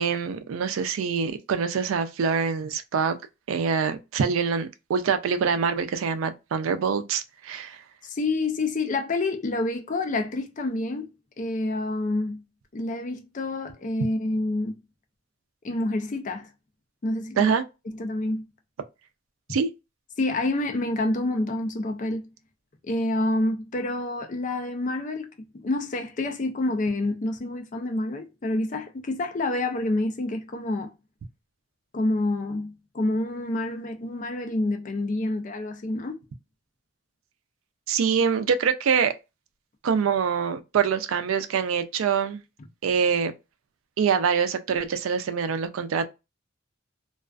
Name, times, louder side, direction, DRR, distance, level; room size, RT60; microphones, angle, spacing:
voice 1, 0.0-3.2 3.5-7.8 17.4-17.6 19.5-19.7 37.9-39.1 39.8-42.4 42.8-43.3 44.0-46.1, right 6 dB, 90° right, 0.4 m, -25 dB
voice 2, 8.0-11.1 11.4-12.4 12.7-14.7 15.6-16.5 17.0-17.5 18.0-18.4 20.2-22.3 22.8-25.3 25.5-30.9 31.9-36.2, left 2 dB, 40° left, 0.4 m, -28 dB
2.3 x 2.3 x 2.2 m
head